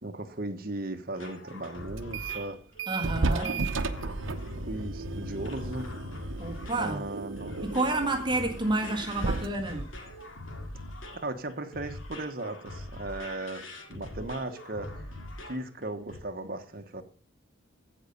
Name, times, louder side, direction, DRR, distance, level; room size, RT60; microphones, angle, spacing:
voice 1, 0.0-2.6 3.2-3.6 4.7-5.9 6.8-7.6 11.1-15.1 15.5-17.0, right 2 dB, 45° right, 1.2 m, -37 dB
sound 1, 1.1-15.7 16.1-16.2, left 1 dB, 85° left, 2.3 m, -42 dB
sound 2, 2.0-2.5 2.8-11.2, right 3 dB, 75° right, 0.9 m, -35 dB
voice 2, 2.9-3.5 6.4-7.0 7.6-9.9, right 2 dB, 20° right, 1.6 m, -29 dB
15.5 x 5.5 x 5.3 m
head